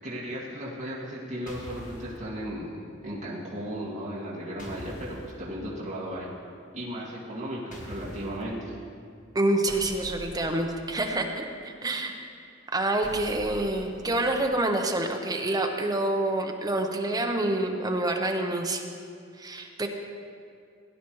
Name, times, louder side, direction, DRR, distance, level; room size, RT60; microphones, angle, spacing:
voice 1, 0.0-6.3 6.7-8.7, equal, 40° right, -7 dB, 2.1 m, -35 dB
sound 1, 1.5-2.2 4.6-5.3 7.7-8.4 9.7-11.1 13.0-14.4, equal, 40° left, 1.5 m, -43 dB
voice 2, 9.3-12.1 12.7-18.8 19.4-19.9, right 1 dB, 20° right, 3 dB, 0.8 m, -27 dB
17.0 x 10.0 x 3.1 m, 2.3 s
head